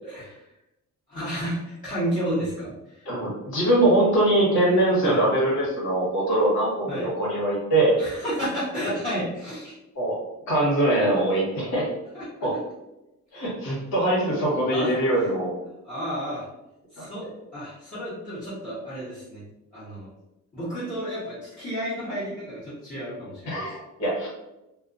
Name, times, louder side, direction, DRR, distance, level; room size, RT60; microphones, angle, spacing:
voice 1, 0.0-0.4 1.1-3.1 5.0-5.3 6.9-7.1 8.0-9.7 12.1-12.3 13.3-13.4 14.7-14.9 15.8-16.5 16.9-17.2 17.5-19.4 19.7-20.1 20.5-23.6, equal, 25° left, -13 dB, 1.1 m, -31 dB
voice 2, 3.0-8.0 9.9-10.2 10.5-11.9 12.4-12.5 13.3-15.5 17.0-17.3 23.5-24.3, right 1 dB, 65° left, -5 dB, 1.3 m, -22 dB
2.5 x 2.4 x 2.5 m, 0.93 s
cardioid pair, 165°, 30 cm